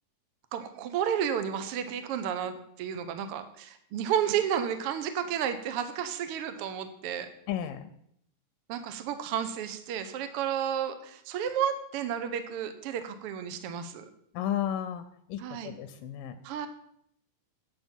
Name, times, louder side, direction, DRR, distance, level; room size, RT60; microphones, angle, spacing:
voice 1, 0.5-7.3 8.7-14.0 15.4-15.7 16.4-16.7, right 9 dB, 85° right, 9 dB, 1.2 m, -32 dB
voice 2, 7.5-7.9 14.3-15.0 15.3-16.4, left 10 dB, 85° left, 9 dB, 2.4 m, -33 dB
9.1 x 8.0 x 5.4 m, 0.70 s
omnidirectional pair, 3.9 m